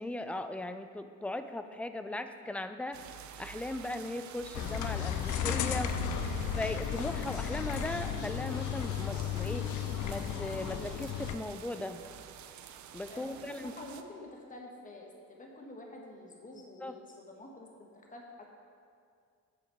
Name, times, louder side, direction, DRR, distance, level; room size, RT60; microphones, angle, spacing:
voice 1, 0.0-3.0 3.4-5.9 6.5-9.7 10.0-12.0 12.9-13.7 16.8-16.9, left 1 dB, 5° left, 9 dB, 0.3 m, -38 dB
sound 1, 2.9-14.0, right 9 dB, 70° right, 0.5 m, -49 dB
sound 2, 4.5-11.4, left 8 dB, 75° left, 0.5 m, -34 dB
voice 2, 5.7-6.6 13.1-18.4, left 2 dB, 25° left, 0 dB, 1.2 m, -49 dB
8.7 x 5.0 x 4.5 m, 2.2 s
cardioid pair, 90°, 30 cm